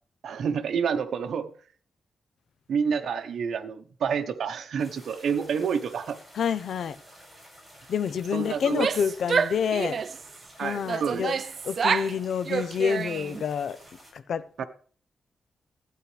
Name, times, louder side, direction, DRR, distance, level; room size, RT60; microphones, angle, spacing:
voice 1, 0.2-1.5 2.7-6.2 8.3-8.9 10.6-11.2 14.6-14.7, right 6 dB, 70° right, 1.0 m, -28 dB
sound 1, 4.8-14.1, equal, ahead, 6.8 m, -51 dB
voice 2, 6.3-7.0 7.9-10.0 10.6-11.4 11.6-13.8 14.1-14.6, left 7 dB, 65° left, 0.7 m, -28 dB
Female speech woman speaking / Yell, 8.6-10.3 10.9-12.2 12.4-13.4, right 6 dB, 45° right, 0.5 m, -28 dB
14.0 x 9.5 x 3.4 m
wide cardioid pair, 150°, 0 cm